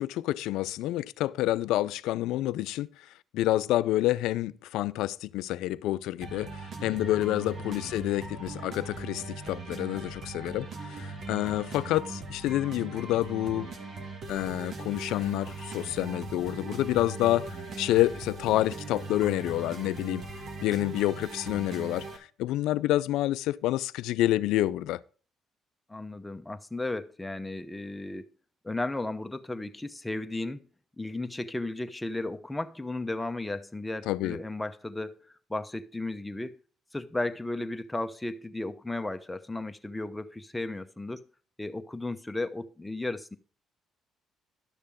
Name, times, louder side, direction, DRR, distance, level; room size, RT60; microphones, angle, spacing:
voice 1, 0.0-3.1 3.3-13.7 14.3-20.2 20.6-25.0 34.1-34.4, left 15 dB, 85° left, 0.3 m, -28 dB
sound 1, 6.2-22.2, right 3 dB, 55° right, 1.8 m, -40 dB
voice 2, 25.9-28.3 28.6-30.6 31.0-36.6 36.9-41.2 41.6-43.4, left 2 dB, 10° left, 0.8 m, -34 dB
11.5 x 6.7 x 3.6 m
supercardioid pair, 70°, 0 cm